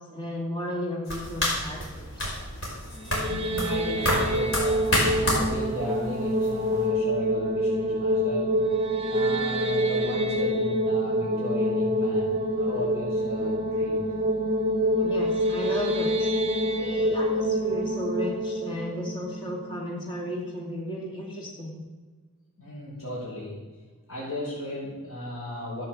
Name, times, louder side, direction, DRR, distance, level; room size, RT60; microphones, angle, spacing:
voice 1, 0.1-2.3 15.0-16.3 16.8-21.9, equal, 20° left, -2 dB, 2.3 m, -34 dB
sound 1, 1.1-6.9, left 1 dB, 60° left, 5.0 m, -29 dB
sound 2, 2.9-20.1, equal, 25° right, 1.3 m, -26 dB
voice 2, 3.2-8.6 9.1-14.0 22.6-23.6 24.1-25.8, left 1 dB, 75° left, -9 dB, 5.8 m, -36 dB
13.5 x 9.1 x 7.5 m, 1.4 s
head